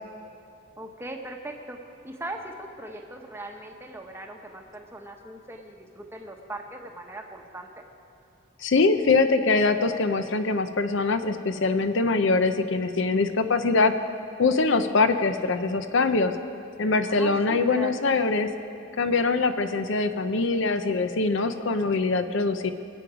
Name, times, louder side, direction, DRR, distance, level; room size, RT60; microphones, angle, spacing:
voice 1, 0.8-1.8 2.0-7.8 17.0-17.9, right 1 dB, 10° right, 2 dB, 1.0 m, -39 dB
voice 2, 8.6-13.9 14.4-16.3 16.8-18.5 19.0-22.7, left 3 dB, 60° left, 9 dB, 0.6 m, -23 dB
24.0 x 8.6 x 5.0 m, 2.8 s
head